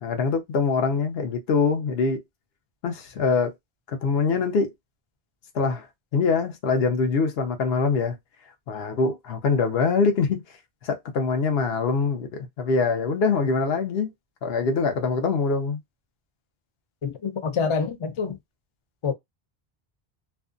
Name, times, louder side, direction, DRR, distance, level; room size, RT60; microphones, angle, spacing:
voice 1, 0.0-2.2 2.8-3.5 4.0-4.7 5.5-5.9 6.1-8.2 8.7-10.4 10.8-14.1 14.4-15.8, left 4 dB, 75° left, 0.9 m, -24 dB
voice 2, 17.0-18.4 19.0-19.1, left 5 dB, 50° left, 0.3 m, -26 dB
2.5 x 2.3 x 2.4 m
omnidirectional pair, 1.0 m